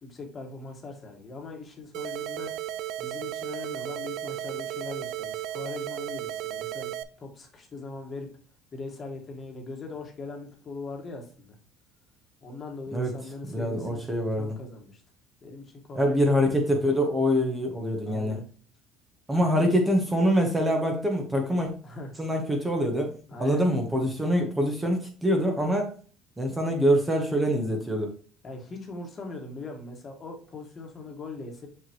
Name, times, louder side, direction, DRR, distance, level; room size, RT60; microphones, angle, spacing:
voice 1, 0.0-2.5 3.0-6.9 7.2-8.3 8.7-11.5 12.4-14.0 14.4-15.0 15.4-16.2 18.0-18.4 21.8-22.1 23.3-23.6 28.4-31.7, left 3 dB, 30° left, 2 dB, 1.6 m, -40 dB
sound 1, 1.9-7.0, right 12 dB, 65° right, 0.4 m, -34 dB
voice 2, 13.5-14.6 15.9-18.4 19.3-21.7 22.2-23.1 23.4-25.9 26.4-28.1, equal, 10° right, 3 dB, 1.2 m, -25 dB
6.0 x 5.6 x 3.0 m, 0.40 s
cardioid pair, 130°, 0 cm